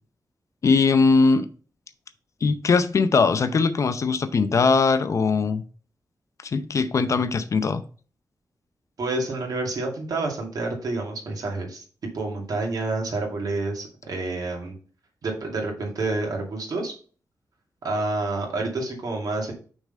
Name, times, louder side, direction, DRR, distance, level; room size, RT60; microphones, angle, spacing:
voice 1, 0.6-1.5 2.4-5.6 6.4-7.8, left 4 dB, 50° left, 10 dB, 0.6 m, -20 dB
voice 2, 9.0-11.8 12.1-14.7 15.2-16.9 17.8-19.5, right 2 dB, 65° right, 0 dB, 2.3 m, -28 dB
6.1 x 3.9 x 5.3 m, 0.39 s
wide cardioid pair, 165°, 7 cm